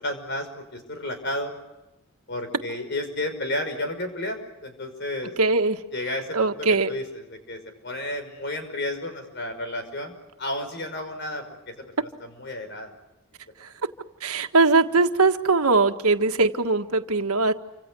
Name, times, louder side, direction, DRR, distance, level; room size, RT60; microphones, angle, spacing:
voice 1, 0.0-1.5 2.3-5.3 5.9-6.4 6.9-7.0 7.5-11.9 12.2-12.9, left 1 dB, 50° left, 7 dB, 5.5 m, -32 dB
voice 2, 5.4-5.8 6.3-6.9 13.6-13.7 14.2-17.5, right 3 dB, 85° right, 7 dB, 1.7 m, -21 dB
29.0 x 26.0 x 6.3 m, 1.0 s
head